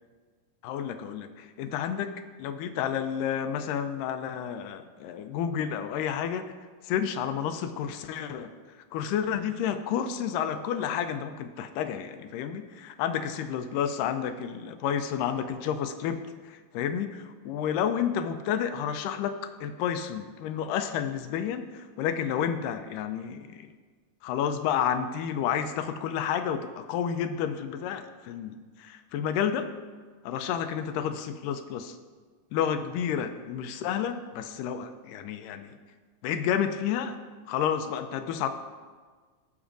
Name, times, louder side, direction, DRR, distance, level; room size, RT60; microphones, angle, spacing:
voice 1, 0.6-2.1 2.4-6.5 6.8-8.5 8.9-23.7 24.2-29.7 30.3-32.0 32.5-35.8 36.2-37.2 37.5-38.5, left 8 dB, 85° left, 9 dB, 2.2 m, -30 dB
16.5 x 6.2 x 2.6 m, 1.5 s
omnidirectional pair, 3.8 m